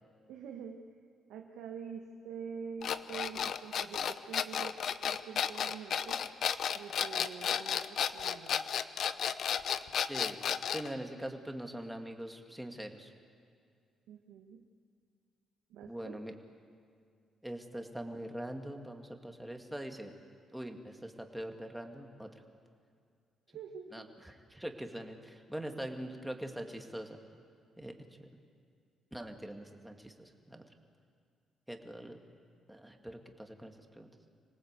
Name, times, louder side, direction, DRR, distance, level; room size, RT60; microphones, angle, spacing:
voice 1, 0.3-0.8 1.3-4.8 5.0-6.2 6.7-8.7 14.1-14.6 15.7-16.2 23.5-24.1, right 6 dB, 90° right, 2 dB, 1.4 m, -46 dB
sound 1, 2.8-10.9, left 8 dB, 65° left, 0.8 m, -33 dB
voice 2, 10.7-13.1 15.9-16.3 17.4-20.1 20.5-22.3 23.9-27.2 27.8-28.3 29.1-30.6 31.7-32.2 32.7-34.1, right 1 dB, 5° right, 3 dB, 2.2 m, -43 dB
26.5 x 18.0 x 8.3 m, 2.2 s
cardioid pair, 90°, 0 cm